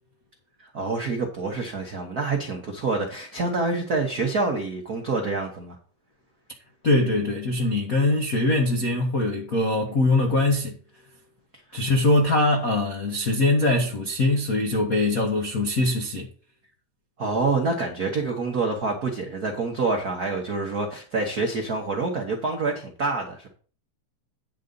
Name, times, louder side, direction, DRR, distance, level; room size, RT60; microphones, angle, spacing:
voice 1, 0.6-5.8 17.2-23.5, right 3 dB, 90° right, 0.8 m, -27 dB
voice 2, 6.8-10.8 11.7-16.3, left 2 dB, 80° left, 0.7 m, -22 dB
10.0 x 3.9 x 6.8 m
omnidirectional pair, 3.8 m